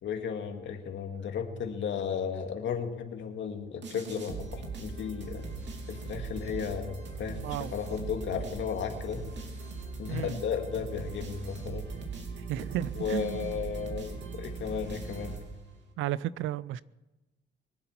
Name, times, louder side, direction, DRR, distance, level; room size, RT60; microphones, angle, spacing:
voice 1, 0.0-5.4 5.9-9.2 10.0-11.9 13.0-15.4, left 7 dB, 70° left, 2.0 m, -34 dB
sound 1, 3.8-15.9, right 4 dB, 65° right, 2.9 m, -40 dB
voice 2, 7.4-7.8 10.1-10.4 12.5-13.6 16.0-16.8, right 13 dB, 90° right, 0.5 m, -33 dB
23.0 x 8.1 x 5.9 m
cardioid pair, 90°, 20 cm